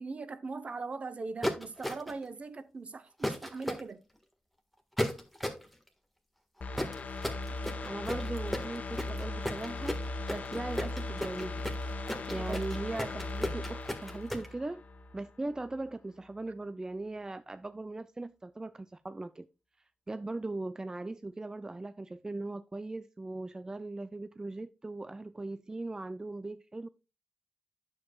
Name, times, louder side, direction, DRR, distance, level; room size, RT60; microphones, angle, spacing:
voice 1, 0.0-4.0 12.3-12.6, right 4 dB, 45° right, 0.8 m, -40 dB
sound 1, 1.4-2.2 3.2-3.8 5.0-5.7 6.7-14.5, equal, ahead, 1.6 m, -34 dB
sound 2, 6.6-15.3 15.6-15.7, left 2 dB, 60° left, 1.2 m, -38 dB
voice 2, 7.8-10.0 10.3-11.6 12.3-14.8 15.1-19.5 20.1-26.9, right 2 dB, 25° right, 0.4 m, -39 dB
9.4 x 7.1 x 2.3 m
cardioid pair, 85°, 3 cm